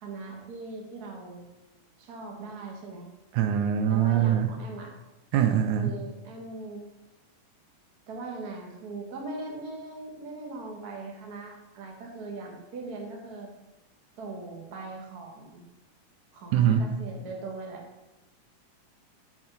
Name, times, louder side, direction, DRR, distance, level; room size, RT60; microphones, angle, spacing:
voice 1, 0.0-1.4 2.0-3.1 3.6-4.9 5.7-6.8 8.1-13.5 14.2-15.6 16.3-17.8, right 3 dB, 60° right, 1 dB, 1.0 m, -40 dB
voice 2, 3.3-4.5 5.3-6.0 16.5-16.8, right 9 dB, 80° right, 7 dB, 1.9 m, -23 dB
9.0 x 5.2 x 3.9 m, 0.99 s
omnidirectional pair, 3.7 m